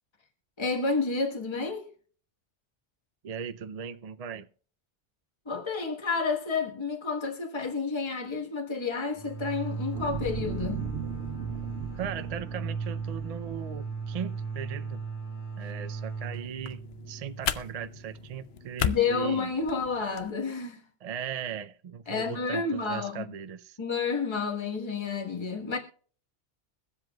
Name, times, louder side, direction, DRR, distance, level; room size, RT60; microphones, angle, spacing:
voice 1, 0.6-1.9 5.4-10.9 18.8-20.8 22.1-23.2 23.8-25.8, left 4 dB, 25° left, 1.3 m, -30 dB
voice 2, 3.2-4.5 11.9-15.0 15.6-19.5 21.0-23.8, right 8 dB, 50° right, 0.5 m, -38 dB
sound 1, 9.1-18.6, right 5 dB, 45° left, 1.5 m, -37 dB
sound 2, 9.9-14.4 14.9-15.0, right 6 dB, 80° right, 1.2 m, -38 dB
sound 3, 16.3-20.3, left 8 dB, 70° left, 0.9 m, -35 dB
23.0 x 7.7 x 2.3 m
omnidirectional pair, 1.2 m